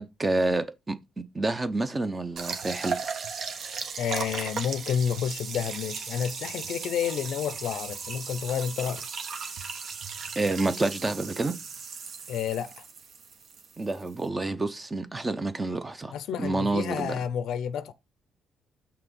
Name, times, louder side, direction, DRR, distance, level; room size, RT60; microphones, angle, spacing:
voice 1, 0.0-3.0 10.4-11.6 13.8-16.1 16.4-17.2, right 2 dB, 20° right, 0.7 m, -28 dB
sound 1, 2.4-14.3, right 5 dB, 60° right, 1.1 m, -37 dB
voice 2, 4.0-9.1 12.3-12.8 16.1-17.9, left 8 dB, 80° left, 0.5 m, -30 dB
5.9 x 3.3 x 5.2 m
cardioid pair, 90°, 0 cm